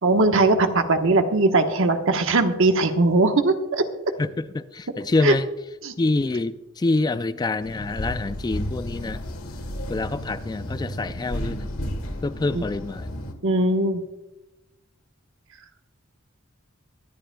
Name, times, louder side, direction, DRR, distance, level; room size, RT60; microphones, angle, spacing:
voice 1, 0.0-3.8 5.2-5.3 5.8-5.9 12.5-12.6 13.4-14.0, right 2 dB, 65° right, 6 dB, 1.2 m, -20 dB
voice 2, 4.2-5.5 6.0-9.2 9.9-11.7 12.2-13.1, left 2 dB, 20° left, 12 dB, 0.3 m, -26 dB
sound 1, 7.6-13.3, equal, 80° left, 1.4 m, -33 dB
23.5 x 12.0 x 2.3 m, 0.99 s
head